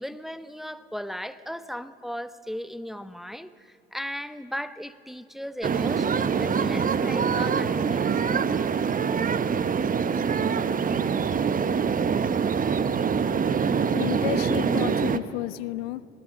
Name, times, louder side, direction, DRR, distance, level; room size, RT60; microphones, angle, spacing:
voice 1, 0.0-8.1, equal, ahead, 14 dB, 0.8 m, -36 dB
sound 1, 5.6-15.2, right 6 dB, 25° right, 0.9 m, -24 dB
voice 2, 13.9-16.1, left 17 dB, 70° left, 20 dB, 0.5 m, -31 dB
25.5 x 19.0 x 7.4 m, 2.7 s
figure-of-eight pair, 60°, 32 cm